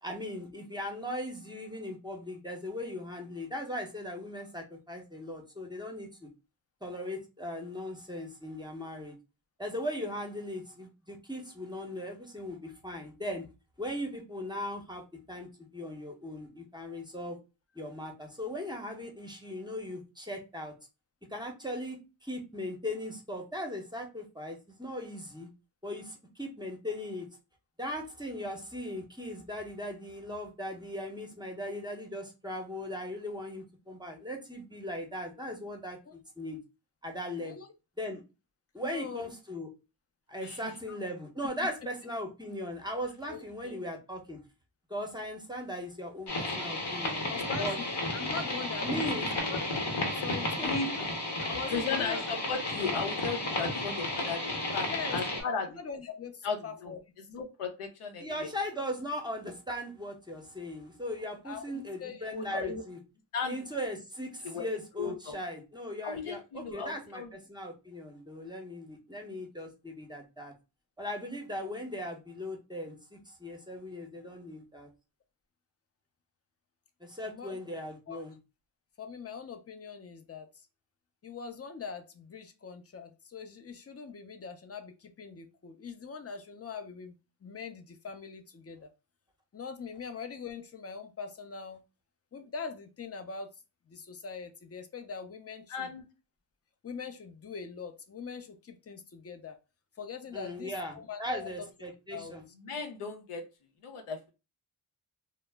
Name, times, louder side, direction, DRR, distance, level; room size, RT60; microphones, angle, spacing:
voice 1, 0.0-6.3 6.8-9.1 9.6-13.5 13.8-17.4 17.7-20.7 21.3-25.5 25.8-27.3 27.8-36.6 37.0-37.6 38.0-38.2 38.7-39.7 40.3-44.4 44.9-47.2 47.6-47.8 48.8-49.3 50.3-50.7 52.0-52.2 58.2-63.0 63.4-70.5 71.0-74.9 77.0-78.3 100.3-102.4, left 1 dB, 10° right, 2 dB, 0.7 m, -38 dB
voice 2, 38.8-39.3 40.9-41.0 43.3-43.8 47.3-49.2 49.5-49.8 50.1-50.8 51.4-52.2 54.9-57.0 61.4-62.3 64.5-64.6 77.3-77.6 78.1-78.2 79.0-80.7 81.2-87.1 87.4-88.9 89.5-91.8 92.3-93.5 93.9-95.9 96.8-99.6 100.0-101.7 102.1-102.3, left 5 dB, 30° left, 7 dB, 0.5 m, -42 dB
sound 1, 46.3-55.4, left 2 dB, 55° left, 1.0 m, -33 dB
voice 3, 51.7-54.4 54.7-55.8 56.4-56.9 57.3-58.5 62.2-62.8 63.3-63.6 64.4-64.7 65.0-65.4 66.0-67.3 95.7-96.0 102.6-103.5 103.8-104.3, left 5 dB, 85° left, 5 dB, 0.6 m, -35 dB
2.0 x 2.0 x 3.3 m, 0.28 s
cardioid pair, 45°, 49 cm